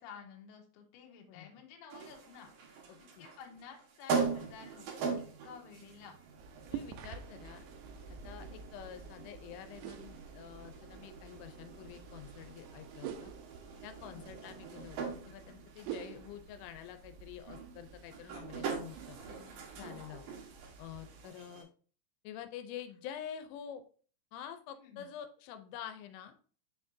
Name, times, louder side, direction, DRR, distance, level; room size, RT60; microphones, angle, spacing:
voice 1, 0.0-2.5 3.2-4.9 5.2-6.1 14.0-14.2 19.2-19.9 24.8-25.1, left 6 dB, 70° left, 2 dB, 2.7 m, -52 dB
sound 1, 1.9-21.6, right 5 dB, 65° right, 2.5 m, -42 dB
voice 2, 2.9-3.3 6.7-7.7 8.2-13.3 13.8-19.2 19.8-20.2 20.8-21.7 22.2-23.8 24.3-26.3, left 9 dB, 90° left, 9 dB, 3.1 m, -47 dB
sound 2, 6.4-21.3, right 8 dB, 85° right, 2.5 m, -49 dB
6.9 x 5.8 x 2.6 m, 0.42 s
omnidirectional pair, 5.4 m